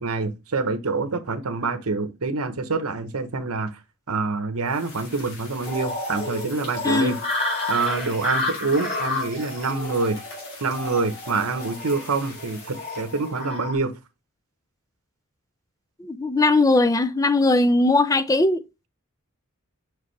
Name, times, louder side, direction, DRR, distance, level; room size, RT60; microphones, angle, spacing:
voice 1, 0.0-3.7 4.1-7.2 7.7-10.2 10.6-13.9, right 3 dB, 75° right, 0.9 m, -26 dB
sound 1, 4.6-13.6, left 3 dB, 65° left, 2.7 m, -43 dB
sound 2, 5.6-13.8, left 2 dB, 35° left, 2.8 m, -31 dB
voice 2, 6.8-7.1 16.0-18.6, left 2 dB, 15° left, 0.4 m, -19 dB
6.1 x 4.9 x 3.2 m
head